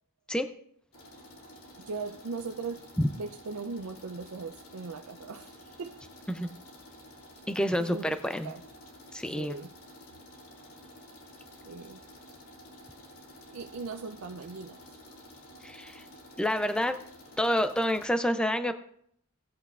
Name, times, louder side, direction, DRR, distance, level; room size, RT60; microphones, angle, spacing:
sound 1, 0.9-18.1, left 1 dB, 75° left, 2.5 m, -51 dB
voice 1, 1.8-2.9 3.2-6.0 7.4-7.5 7.8-8.1 8.4-8.6 9.4-9.7 11.6-12.0 13.5-14.8, right 4 dB, 70° right, 0.5 m, -39 dB
voice 2, 7.5-8.5 9.1-9.5 15.6-16.0 16.4-17.0 17.4-18.7, equal, 5° left, 0.4 m, -28 dB
17.5 x 8.1 x 2.4 m
head